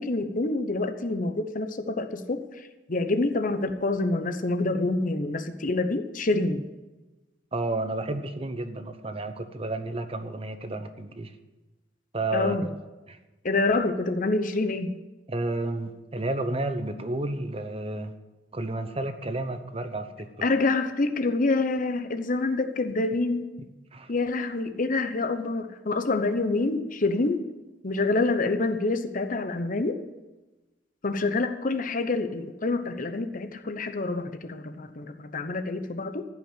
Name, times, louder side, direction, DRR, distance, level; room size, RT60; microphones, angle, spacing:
voice 1, 0.0-6.7 12.3-12.7 13.4-15.0 20.4-23.5 24.1-27.5 27.8-30.0 31.0-36.3, left 2 dB, 45° left, 8 dB, 0.9 m, -27 dB
voice 2, 7.5-11.3 12.1-12.7 13.1-13.2 15.3-18.1 18.5-20.5 23.9-24.1, right 2 dB, 30° right, 9 dB, 0.9 m, -31 dB
14.5 x 5.7 x 9.2 m, 1.1 s
head